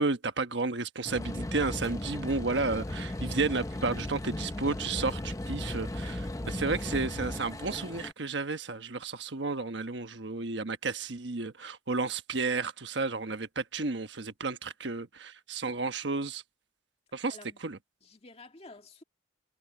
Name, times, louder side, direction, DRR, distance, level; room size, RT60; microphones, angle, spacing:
voice 1, 0.0-16.4 17.1-17.8, right 3 dB, 65° right, 1.2 m, -32 dB
sound 1, 1.0-8.1, left 1 dB, 15° left, 0.6 m, -36 dB
voice 2, 17.3-17.6 18.0-19.0, left 2 dB, 30° left, 2.0 m, -51 dB
head